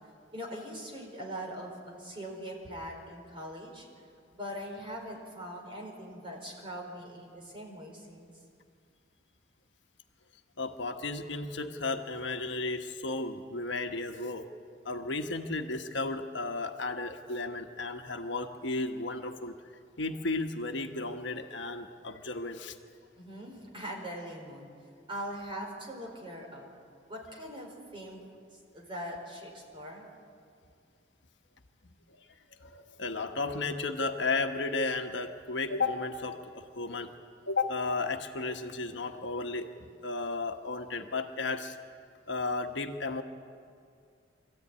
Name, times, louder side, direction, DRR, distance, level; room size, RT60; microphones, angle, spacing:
voice 1, 0.3-3.9 4.3-8.3 23.2-24.7 25.1-26.7 27.1-28.2 28.5-30.0, equal, 25° right, 0 dB, 4.6 m, -41 dB
voice 2, 10.6-14.5 14.8-19.5 20.0-22.8 31.8-32.3 32.6-37.1 37.5-39.7 40.0-41.8 42.3-43.2, left 3 dB, 65° left, 5 dB, 1.3 m, -34 dB
25.0 x 14.5 x 9.7 m, 2.3 s
head